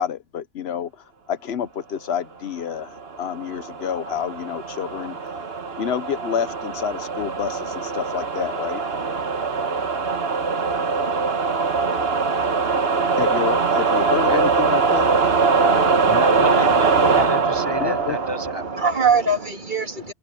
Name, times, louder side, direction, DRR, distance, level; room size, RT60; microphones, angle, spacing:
voice 1, 0.0-5.2 5.8-8.8 13.2-15.1 17.8-18.2, left 8 dB, 70° left, 1.1 m, -28 dB
sound 1, 3.0-19.5, right 4 dB, 65° right, 1.7 m, -22 dB
voice 2, 16.1-18.6, left 1 dB, 25° left, 0.7 m, -30 dB
voice 3, 17.6-20.1, right 4 dB, 45° right, 2.8 m, -24 dB
omnidirectional pair, 1.1 m